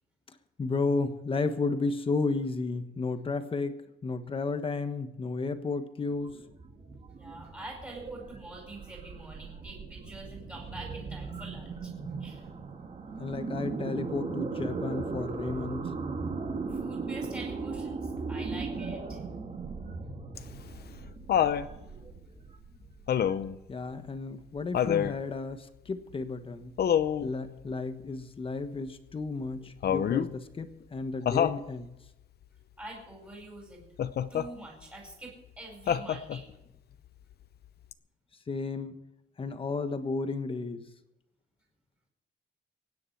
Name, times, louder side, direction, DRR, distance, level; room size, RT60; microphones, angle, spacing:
voice 1, 0.3-6.4 13.2-15.9 23.7-26.8 27.2-31.9 38.5-39.0 39.4-40.8, left 3 dB, 25° left, 8 dB, 1.3 m, -33 dB
sound 1, 6.1-23.9, right 4 dB, 30° right, 1.8 m, -38 dB
voice 2, 7.2-11.9 12.2-12.5 16.7-19.2 32.8-33.8 34.3-36.5, right 2 dB, 10° right, -2 dB, 4.6 m, -45 dB
Laughter, 20.4-21.7 23.1-23.6 24.7-25.2 26.8-27.3 29.8-30.3 31.3-31.6 34.0-34.5 35.9-36.5 37.9-38.0, left 9 dB, 50° left, 0.7 m, -27 dB
24.5 x 9.8 x 4.6 m, 0.93 s
cardioid pair, 160°, 21 cm